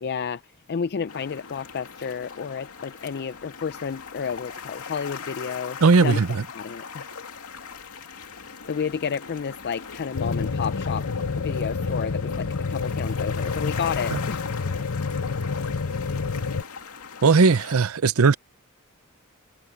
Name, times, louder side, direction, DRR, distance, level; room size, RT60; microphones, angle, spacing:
voice 1, 0.0-0.4 0.7-6.2 6.5-7.0 8.7-11.1 11.4-12.4 12.7-14.4, left 6 dB, 50° left, 0.4 m, -31 dB
sound 1, 1.1-17.8, left 6 dB, 85° left, 2.4 m, -40 dB
voice 2, 5.8-6.5 14.1-14.2 17.2-18.4, right 4 dB, 75° right, 0.6 m, -18 dB
sound 2, 10.2-16.6, left 4 dB, 70° left, 0.8 m, -28 dB
head